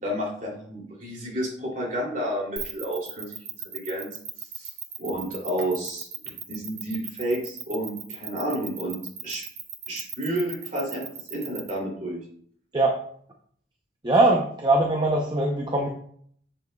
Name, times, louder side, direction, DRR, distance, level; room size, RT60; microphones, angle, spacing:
voice 1, 0.0-3.4 3.6-4.1 4.4-4.7 5.0-9.4 9.9-12.2, right 1 dB, 45° right, -3 dB, 2.8 m, -31 dB
sound 1, 2.6-11.7, right 9 dB, 65° right, 1.3 m, -37 dB
voice 2, 14.0-15.9, right 2 dB, 25° right, 1 dB, 0.6 m, -21 dB
7.9 x 7.3 x 2.3 m, 0.62 s
head